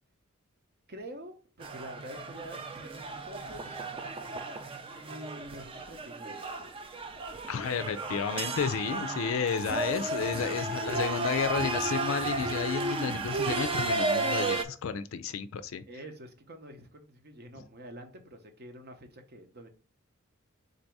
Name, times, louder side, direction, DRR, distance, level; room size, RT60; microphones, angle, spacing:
voice 1, 0.9-3.9 4.8-6.4 8.9-9.6 10.6-11.7 15.9-19.7, right 1 dB, 50° right, 0.7 m, -47 dB
sound 1, 1.6-14.6, right 3 dB, 25° right, 0.4 m, -33 dB
voice 2, 7.5-15.8, left 6 dB, 70° left, 0.4 m, -32 dB
3.9 x 2.7 x 4.6 m
head